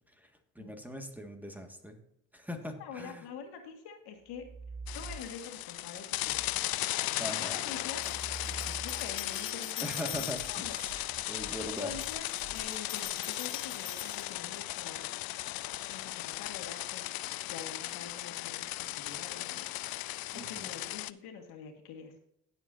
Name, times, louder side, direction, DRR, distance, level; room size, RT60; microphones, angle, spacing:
voice 1, 0.1-2.0 2.3-3.3 7.2-7.6 9.8-11.0 11.3-11.9 20.3-20.7, equal, 5° right, 5 dB, 1.8 m, -41 dB
voice 2, 2.8-4.4 4.9-6.5 7.1-8.0 8.5-10.7 11.5-15.0 15.9-17.1 17.5-19.6 20.3-22.2, left 6 dB, 85° left, 4 dB, 1.9 m, -46 dB
sound 1, 4.2-5.6 6.1-13.1, right 3 dB, 65° right, 2.4 m, -48 dB
sound 2, 4.9-21.1, left 17 dB, 65° left, 0.5 m, -37 dB
sound 3, 8.0-10.8 11.8-14.8, left 7 dB, 30° left, 2.3 m, -45 dB
17.5 x 7.2 x 2.7 m, 0.76 s
cardioid pair, 80°, 39 cm